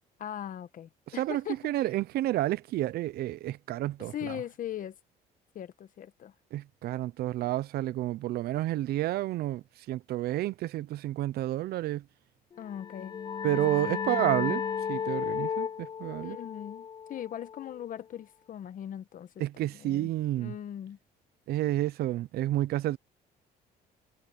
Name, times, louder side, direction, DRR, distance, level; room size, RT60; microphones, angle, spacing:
voice 1, 0.2-1.6 4.1-4.9 5.5-6.3 12.6-13.2 13.5-13.7 16.2-19.3 19.7-20.1 20.4-21.0, left 10 dB, 55° left, 1.3 m, -40 dB
voice 2, 1.1-4.4 6.5-12.0 13.4-14.6 14.9-16.4 19.4-20.5 21.5-23.0, right 15 dB, 70° right, 0.6 m, -30 dB
sound 1, 12.6-18.0, left 7 dB, 25° left, 0.4 m, -34 dB
cardioid pair, 110°, 17 cm